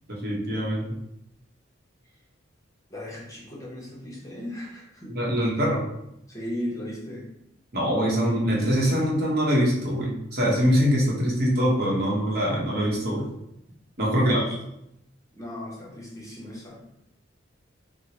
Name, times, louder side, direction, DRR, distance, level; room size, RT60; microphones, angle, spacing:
voice 1, 0.1-0.9 5.1-5.8 7.7-13.3 14.0-14.4, equal, 50° right, -4 dB, 0.9 m, -23 dB
voice 2, 2.9-5.2 6.3-7.3 14.1-14.5 15.3-16.8, left 1 dB, 15° left, -5 dB, 0.8 m, -36 dB
4.5 x 2.0 x 2.8 m, 0.81 s
head